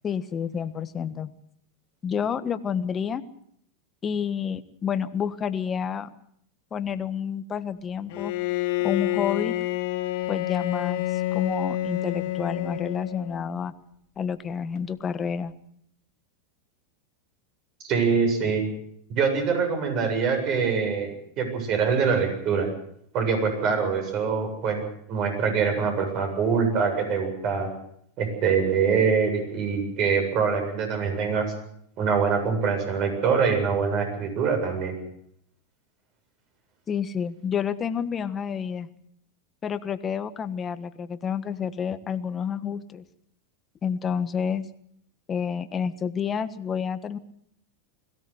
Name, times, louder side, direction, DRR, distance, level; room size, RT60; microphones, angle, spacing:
voice 1, 0.0-1.3 2.0-3.2 4.0-6.1 6.7-8.3 8.8-9.6 10.3-13.7 14.2-15.5 36.9-38.9 39.6-43.0 43.8-44.7 45.3-47.2, left 7 dB, 25° left, 11 dB, 1.4 m, -29 dB
Bowed string instrument, 8.1-13.5, left 16 dB, 60° left, 2.0 m, -28 dB
voice 2, 17.9-18.6 19.1-22.7 23.1-24.8 25.1-27.7 28.2-31.4 32.0-34.9, right 5 dB, 45° right, 5 dB, 7.7 m, -24 dB
21.5 x 16.5 x 7.9 m, 0.67 s
supercardioid pair, 125°, 0 cm